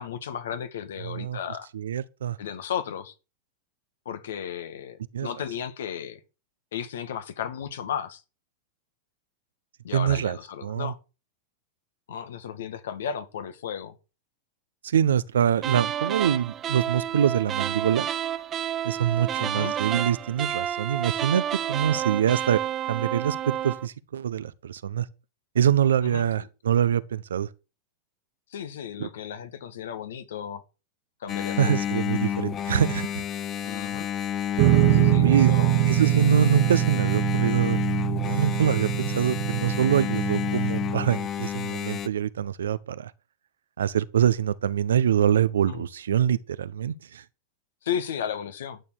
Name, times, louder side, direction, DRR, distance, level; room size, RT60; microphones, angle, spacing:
voice 1, 0.0-1.7 2.4-3.1 4.1-6.2 6.7-8.2 9.8-11.0 12.1-13.9 19.4-19.8 26.0-26.5 28.5-30.6 31.2-31.8 33.6-34.1 34.9-35.8 45.7-45.9 47.8-48.8, left 8 dB, 80° left, 2.1 m, -34 dB
voice 2, 1.0-1.4 1.7-2.4 5.1-5.3 9.9-10.4 10.6-10.9 14.9-18.1 18.8-22.6 22.9-25.1 25.5-27.5 29.0-29.1 31.6-33.2 35.2-35.5 35.9-37.8 38.2-43.1 43.8-47.2, right 9 dB, 85° right, 0.9 m, -24 dB
sound 1, 15.6-23.9, right 10 dB, 30° right, 1.2 m, -30 dB
Engine, 31.3-42.1, left 9 dB, 30° left, 0.9 m, -30 dB
sound 2, 34.6-41.1, right 17 dB, 55° right, 0.9 m, -23 dB
11.5 x 7.0 x 6.2 m
hypercardioid pair, 115°, 0 cm